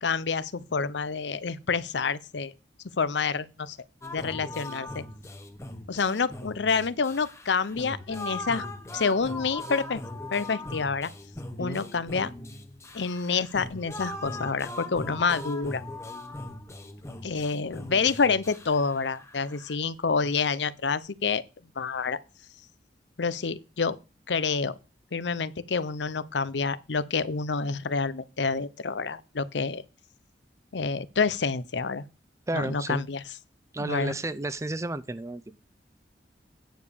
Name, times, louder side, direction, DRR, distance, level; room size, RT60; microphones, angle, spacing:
voice 1, 0.0-2.5 3.0-3.8 4.1-5.0 5.9-8.7 8.9-10.0 10.3-11.1 11.6-12.3 12.9-15.8 17.2-21.4 21.8-22.2 23.2-24.0 24.3-24.7 25.1-29.8 30.7-32.0 32.5-33.2 33.8-34.2, left 5 dB, 85° left, 0.7 m, -28 dB
sound 1, 4.0-19.8, left 2 dB, 15° left, 1.2 m, -40 dB
voice 2, 32.5-33.0 33.7-35.6, right 2 dB, 15° right, 0.5 m, -32 dB
9.3 x 4.9 x 6.9 m
head